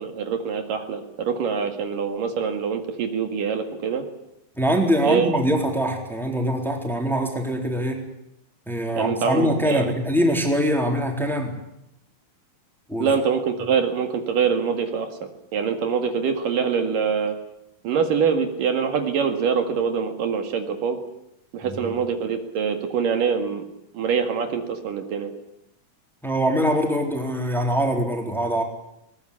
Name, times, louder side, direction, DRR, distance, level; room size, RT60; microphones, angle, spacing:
voice 1, 0.0-4.0 5.0-5.3 9.0-9.9 13.0-17.4 17.8-21.0 21.5-23.6 23.9-25.3, right 6 dB, 70° right, 6 dB, 3.5 m, -24 dB
voice 2, 4.6-8.0 8.7-11.6 12.9-13.1 21.6-21.9 26.2-28.6, equal, ahead, 2 dB, 3.6 m, -23 dB
21.0 x 20.0 x 10.0 m, 0.82 s
omnidirectional pair, 4.1 m